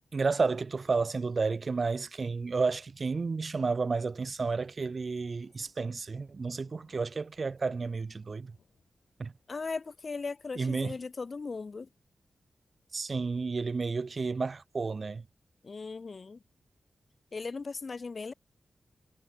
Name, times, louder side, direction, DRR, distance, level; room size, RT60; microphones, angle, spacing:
voice 1, 0.1-8.6 9.2-9.3 10.6-11.0 12.9-15.2, right 4 dB, 50° right, 0.6 m, -31 dB
Thunder / Rain, 4.3-9.8, left 7 dB, 85° left, 7.7 m, -69 dB
voice 2, 9.5-11.9 15.6-16.4 17.3-18.3, left 4 dB, 50° left, 0.6 m, -38 dB
cardioid pair, 70°, 0 cm